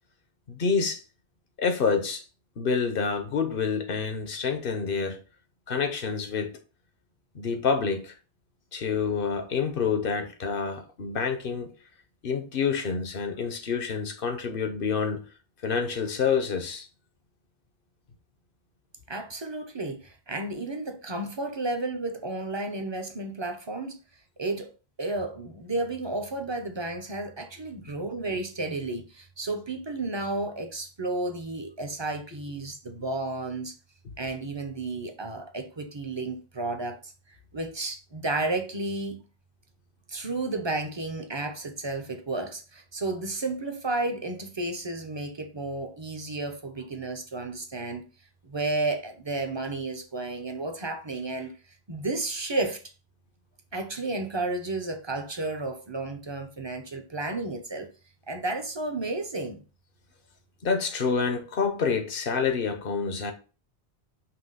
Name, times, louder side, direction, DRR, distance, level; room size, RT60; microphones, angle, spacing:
voice 1, 0.5-1.0 1.6-2.2 2.6-5.2 5.7-6.6 7.3-8.1 8.7-11.7 12.2-15.2 15.6-16.9 60.6-63.3, left 5 dB, 60° left, 1.1 m, -27 dB
voice 2, 19.1-24.0 24.4-24.7 25.0-33.7 34.2-37.1 37.5-39.2 40.1-48.1 48.4-51.5 51.9-52.8 53.7-57.9 58.3-59.6, right 2 dB, 30° right, 0.9 m, -32 dB
5.9 x 2.9 x 5.6 m
omnidirectional pair, 1.0 m